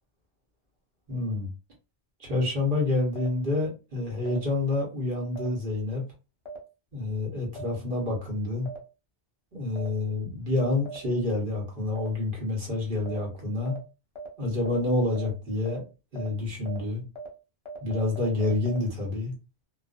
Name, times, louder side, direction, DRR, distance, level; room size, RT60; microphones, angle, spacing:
voice 1, 1.1-1.5 2.2-6.0 6.9-8.7 9.5-13.8 14.4-15.8 16.1-17.0 17.8-19.3, left 2 dB, 50° right, -2 dB, 1.2 m, -28 dB
sound 1, 3.1-3.3 4.2-4.4 5.3-5.5 6.4-6.6 7.5-7.7 8.6-8.8 9.7-9.9 10.8-11.0 11.9-12.1 13.0-13.2 13.6-13.8 14.1-14.3 14.6-14.8 15.1-15.3 15.6-15.8 16.1-16.3 16.6-16.8 17.1-17.3 17.6-18.8, right 2 dB, 40° left, 0.4 m, -39 dB
2.5 x 2.3 x 2.4 m, 0.30 s
omnidirectional pair, 1.2 m